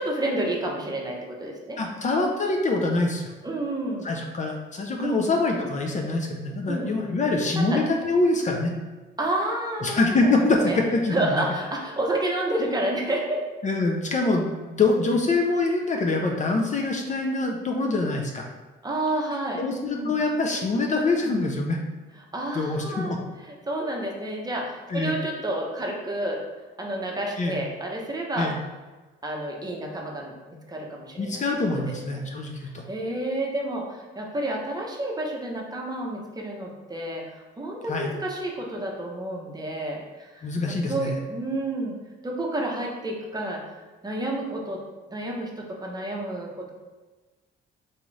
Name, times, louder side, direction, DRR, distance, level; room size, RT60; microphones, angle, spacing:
voice 1, 0.0-1.8 3.4-4.1 5.0-5.2 6.7-6.9 7.5-7.8 9.2-10.3 10.6-10.8 11.1-13.4 18.8-19.6 19.9-20.1 22.1-23.1 23.4-26.4 26.8-28.5 29.2-31.4 31.9-32.3 32.6-41.9 42.2-43.6 44.0-44.8 45.1-46.7, right 1 dB, 20° right, -1 dB, 0.7 m, -30 dB
voice 2, 1.8-3.3 4.0-8.7 9.8-11.4 13.6-18.5 19.6-21.8 22.5-23.2 24.9-25.1 27.4-27.6 28.4-28.6 31.2-32.9 37.9-38.1 40.4-41.2, left 3 dB, 35° left, 1 dB, 0.5 m, -25 dB
4.0 x 2.4 x 3.1 m, 1.3 s
cardioid pair, 90°, 20 cm